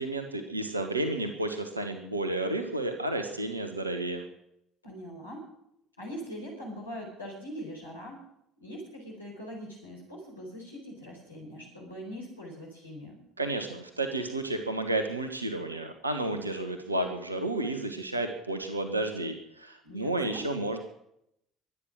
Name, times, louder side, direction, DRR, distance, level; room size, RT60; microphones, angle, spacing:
voice 1, 0.0-4.2 13.4-20.8, right 2 dB, 85° right, 7 dB, 1.4 m, -31 dB
voice 2, 4.8-5.5 6.0-8.3 8.6-13.2 19.8-20.5, equal, 85° left, -3 dB, 4.5 m, -42 dB
23.5 x 9.7 x 6.2 m, 0.77 s
figure-of-eight pair, 55°, 0 cm